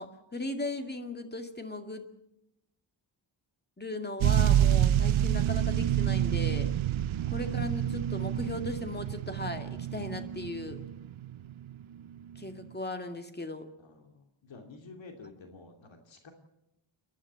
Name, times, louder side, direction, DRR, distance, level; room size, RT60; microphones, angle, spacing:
voice 1, 0.0-2.1 3.8-6.7 7.3-10.8 12.4-13.7, left 2 dB, 20° left, 6 dB, 2.1 m, -37 dB
sound 1, 4.2-11.7 12.4-12.5, right 11 dB, 90° right, 0.8 m, -28 dB
voice 2, 7.1-7.6 13.8-16.3, left 3 dB, 70° left, 4 dB, 2.8 m, -51 dB
29.5 x 11.0 x 8.6 m, 0.86 s
wide cardioid pair, 100°, 46 cm